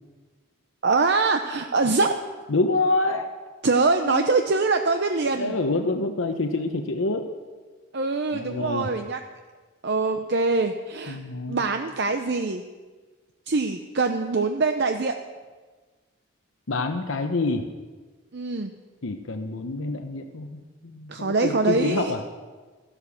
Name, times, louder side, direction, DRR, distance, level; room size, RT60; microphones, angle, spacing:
voice 1, 0.8-2.2 3.6-5.6 7.9-9.2 9.8-11.2 11.5-12.6 13.5-15.1 18.3-18.7 21.1-22.1, right 3 dB, 50° right, 6 dB, 0.7 m, -23 dB
voice 2, 2.5-3.3 4.0-4.3 5.2-7.3 8.3-8.9 11.1-11.6 16.7-17.7 19.0-22.2, left 2 dB, 70° left, 5 dB, 0.9 m, -27 dB
15.0 x 11.0 x 7.1 m, 1.4 s
head